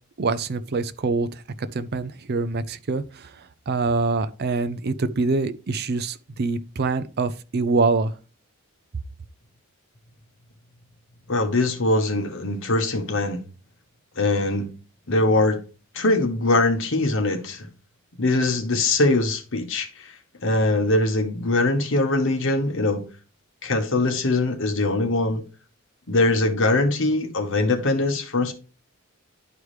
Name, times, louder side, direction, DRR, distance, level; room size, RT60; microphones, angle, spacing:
voice 1, 0.2-1.4 1.7-3.3 3.7-8.1, right 3 dB, 50° right, 0.5 m, -25 dB
voice 2, 11.3-13.4 14.2-14.7 15.1-15.6 15.9-17.7 18.2-23.0 23.6-25.4 26.1-28.5, left 2 dB, 60° left, 1.2 m, -22 dB
11.0 x 4.7 x 3.2 m
head